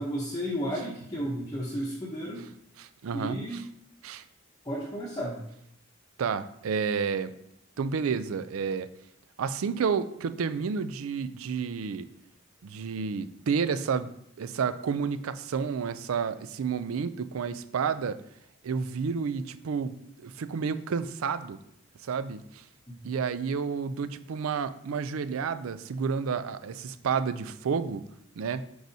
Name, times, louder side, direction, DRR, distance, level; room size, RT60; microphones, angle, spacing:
voice 1, 0.0-2.5 3.1-3.7 4.6-5.4 22.9-23.0, equal, 20° left, -4 dB, 0.7 m, -33 dB
voice 2, 2.8-3.4 4.0-4.2 6.2-7.3 7.8-8.9 9.4-12.1 12.6-14.1 14.4-18.2 18.6-21.6 22.0-22.6 23.0-28.0 28.4-28.6, right 6 dB, 90° right, 13 dB, 0.4 m, -30 dB
8.0 x 4.8 x 2.7 m, 0.76 s
head